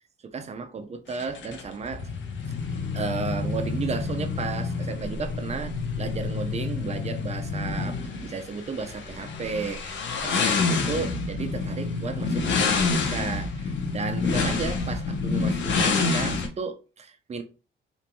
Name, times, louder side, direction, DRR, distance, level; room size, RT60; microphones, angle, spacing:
voice 1, 0.2-2.1 2.9-17.4, right 5 dB, 35° right, 0.5 m, -34 dB
sound 1, 1.1-16.5, left 4 dB, 70° left, 0.6 m, -28 dB
2.9 x 2.6 x 2.2 m
cardioid pair, 90°, 20 cm